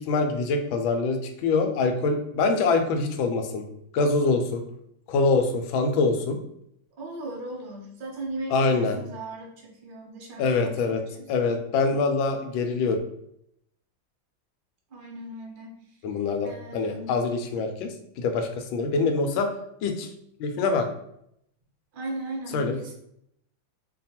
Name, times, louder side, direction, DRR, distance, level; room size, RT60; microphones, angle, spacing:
voice 1, 0.0-3.6 3.9-4.6 5.1-6.4 8.5-9.0 10.4-11.0 11.3-13.0 16.0-19.5 19.8-20.1 20.4-20.9 22.5-22.8, left 4 dB, 85° left, 5 dB, 1.4 m, -24 dB
voice 2, 7.0-11.3 14.9-17.2 21.9-22.9, right 2 dB, 55° right, -2 dB, 0.5 m, -38 dB
3.2 x 2.3 x 4.1 m, 0.75 s
omnidirectional pair, 2.1 m